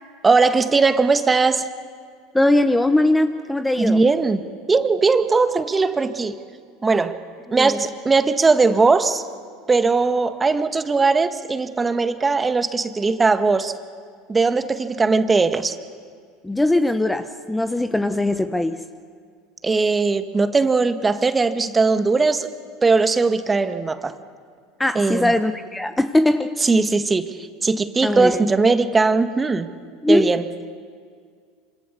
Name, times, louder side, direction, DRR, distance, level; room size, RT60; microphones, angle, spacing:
voice 1, 0.2-1.7 3.8-6.4 6.8-7.2 7.5-9.2 9.7-13.7 14.3-15.7 19.6-22.5 22.8-24.1 24.9-25.3 26.6-27.3 27.6-29.7 30.1-30.4, right 4 dB, 20° right, 9 dB, 1.6 m, -19 dB
voice 2, 2.3-4.0 7.5-7.8 16.4-18.8 24.8-26.6 28.0-28.5 30.0-30.4, left 1 dB, 10° left, 9 dB, 1.0 m, -20 dB
26.5 x 25.5 x 6.9 m, 2.1 s
hypercardioid pair, 90°, 0 cm